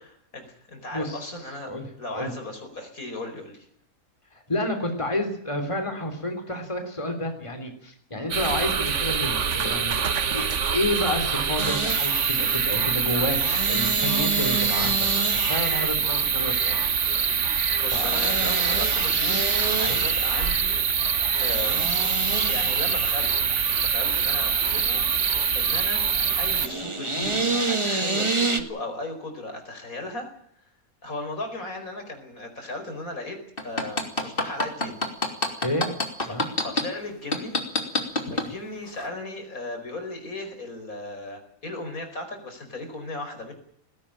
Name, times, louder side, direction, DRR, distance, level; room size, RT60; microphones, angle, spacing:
voice 1, 0.3-1.7 2.0-3.7 17.8-20.8 21.4-21.9 22.2-23.3 23.8-30.3 31.0-33.4 33.6-35.0 36.2-37.6 38.0-43.5, left 2 dB, 75° left, 5 dB, 5.3 m, -36 dB
voice 2, 0.9-1.3 1.7-1.9 2.1-2.3 4.3-10.0 10.3-10.5 10.7-16.8 17.9-18.1 19.8-20.0 35.6-35.9 36.2-36.5, left 1 dB, 20° left, 6 dB, 3.5 m, -30 dB
sound 1, 8.3-26.7, right 6 dB, 55° right, 1.5 m, -24 dB
sound 2, 11.6-28.6, right 3 dB, 20° right, 1.7 m, -30 dB
sound 3, 33.6-36.8 37.3-38.5 38.9-39.1, left 2 dB, 40° left, 3.2 m, -24 dB
20.0 x 16.5 x 8.9 m, 0.66 s
omnidirectional pair, 1.5 m